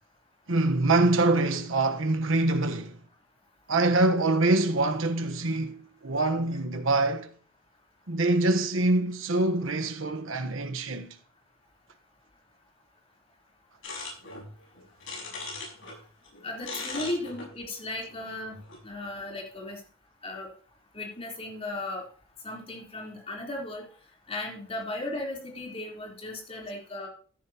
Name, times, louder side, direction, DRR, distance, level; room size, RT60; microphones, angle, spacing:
voice 1, 0.5-3.0 3.7-7.3 8.1-11.2, right 2 dB, 75° right, 1.2 m, -25 dB
sound 1, 13.8-16.0 16.2-18.8, left 3 dB, 70° left, 5.3 m, -39 dB
voice 2, 16.4-18.5 18.8-19.8 20.2-20.5 20.9-22.0 22.4-23.9 24.3-27.1, left 2 dB, 30° left, 3.9 m, -36 dB
14.5 x 10.5 x 2.9 m
head